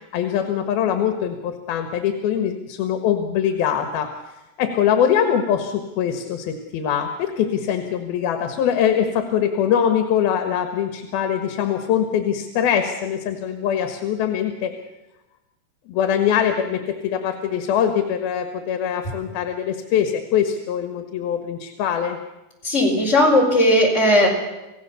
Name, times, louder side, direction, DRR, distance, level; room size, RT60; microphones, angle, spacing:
voice 1, 0.1-4.1 4.6-14.7 15.9-22.2, left 9 dB, 80° left, 6 dB, 3.3 m, -22 dB
voice 2, 22.6-24.3, left 1 dB, 20° left, -1 dB, 5.0 m, -16 dB
28.0 x 16.0 x 6.9 m, 1.0 s
omnidirectional pair, 4.3 m